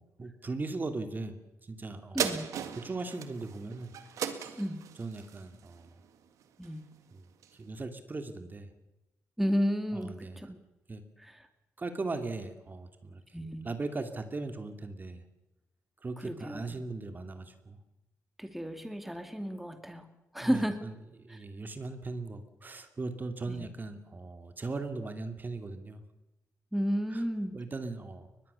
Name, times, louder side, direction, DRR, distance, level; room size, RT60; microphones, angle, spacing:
voice 1, 0.0-2.3 2.7-3.9 4.3-4.6 5.0-5.9 7.1-7.3 7.5-8.7 9.9-10.5 10.9-11.0 11.8-13.2 13.6-15.2 16.0-17.8 20.4-20.9 21.2-26.0 27.1-27.2 27.5-28.3, right 3 dB, 35° right, 8 dB, 2.5 m, -38 dB
voice 2, 2.1-2.5 4.6-4.8 6.6-6.8 9.4-10.6 11.2-11.4 13.3-13.7 16.2-16.8 18.4-20.1 20.3-20.8 21.3-21.4 23.5-23.7 26.7-27.6, equal, 5° right, 8 dB, 2.5 m, -32 dB
sound 1, 2.2-6.9 7.4-7.5, right 9 dB, 85° right, 1.9 m, -37 dB
22.5 x 20.5 x 7.0 m, 0.96 s
cardioid pair, 70°, 5 cm